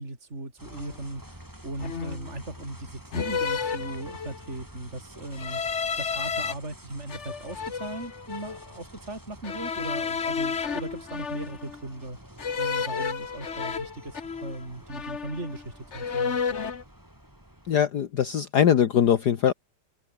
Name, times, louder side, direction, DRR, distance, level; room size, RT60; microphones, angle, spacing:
voice 1, 0.0-12.2 12.6-16.4, right 2 dB, 35° right, 6.1 m, -38 dB
sound 1, 0.6-17.8, right 1 dB, 10° right, 5.6 m, -48 dB
sound 2, 0.7-0.9 1.8-2.3 3.1-4.5 5.3-6.5 7.1-8.6 9.4-11.8 12.4-14.6 14.9-15.6 15.9-16.8, left 6 dB, 40° left, 1.6 m, -31 dB
voice 2, 17.7-19.5, left 9 dB, 60° left, 1.8 m, -21 dB
omnidirectional pair, 2.1 m